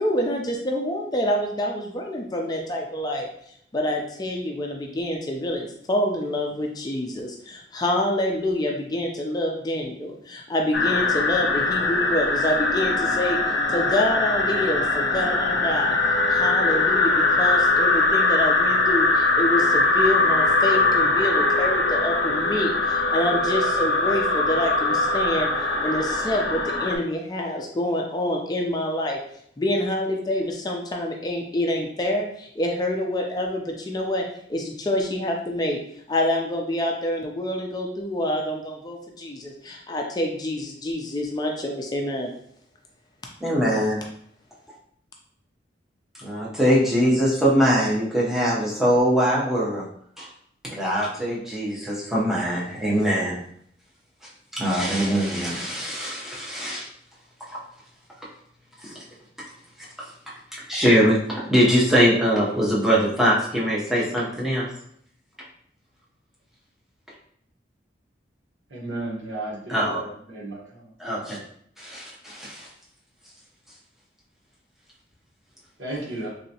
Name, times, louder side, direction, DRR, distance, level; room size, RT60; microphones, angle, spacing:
voice 1, 0.0-3.3 3.7-13.4 13.7-16.0 16.3-29.2 29.6-34.2 34.5-35.8 36.1-42.3, left 1 dB, 20° left, 0 dB, 0.4 m, -27 dB
sound 1, 10.7-27.0, left 3 dB, 70° left, 0.6 m, -21 dB
voice 2, 43.4-44.0 46.2-49.9 50.2-50.3 50.6-53.4 54.5-56.9 57.5-57.6 58.8-58.9 60.5-64.7 69.7-70.0 71.0-71.4 71.8-72.7, equal, ahead, -6 dB, 0.8 m, -22 dB
voice 3, 68.7-70.6 75.8-76.3, right 2 dB, 85° right, -5 dB, 1.2 m, -33 dB
3.3 x 2.8 x 2.7 m, 0.65 s
head